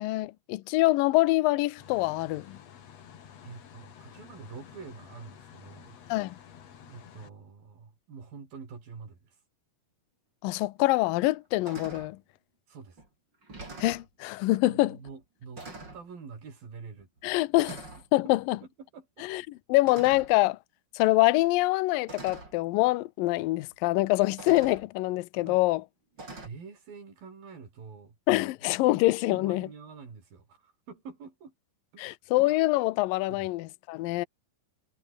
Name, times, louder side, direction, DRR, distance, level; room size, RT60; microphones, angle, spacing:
voice 1, 0.0-2.6 6.1-6.4 10.4-12.2 13.8-15.0 17.2-17.7 18.1-18.6 19.2-19.4 19.7-20.6 20.9-25.8 28.3-29.7 32.0-34.3, left 19 dB, 75° left, 2.3 m, -25 dB
sound 1, 1.8-7.3, left 8 dB, 50° left, 2.6 m, -51 dB
voice 2, 3.4-6.0 6.8-9.4 12.7-13.0 14.7-17.4 17.7-17.8 18.8-19.3 25.5-25.6 26.4-28.2 28.9-29.0 29.3-31.5 31.9-32.2 33.3-33.5, right 5 dB, 60° right, 7.4 m, -46 dB
sound 2, 10.6-10.7 11.2-11.4 11.6-12.1 13.0-13.1 13.4-14.1 15.0-15.2 15.5-16.0 17.0-17.2 17.6-18.1 19.8-20.4 21.5-21.6 22.1-22.5 23.7-23.8 24.4-24.9 26.2-26.5, right 2 dB, 25° right, 6.3 m, -44 dB
omnidirectional pair, 4.6 m